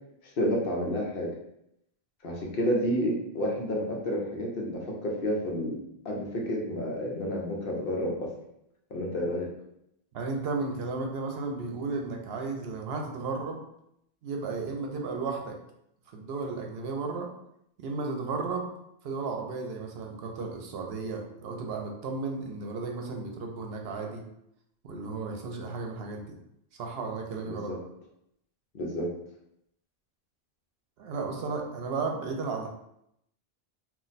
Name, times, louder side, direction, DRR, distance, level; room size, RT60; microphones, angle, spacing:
voice 1, 0.4-1.3 2.2-5.8 6.0-8.3 8.9-9.5 27.5-27.8 28.7-29.1, equal, 65° left, -1 dB, 0.9 m, -30 dB
voice 2, 10.1-13.6 14.2-15.6 16.1-17.3 17.8-18.7 19.0-24.2 24.8-26.2 26.8-27.7 31.0-32.7, right 4 dB, 75° right, 2 dB, 0.8 m, -34 dB
2.4 x 2.1 x 3.9 m, 0.78 s
omnidirectional pair, 1.0 m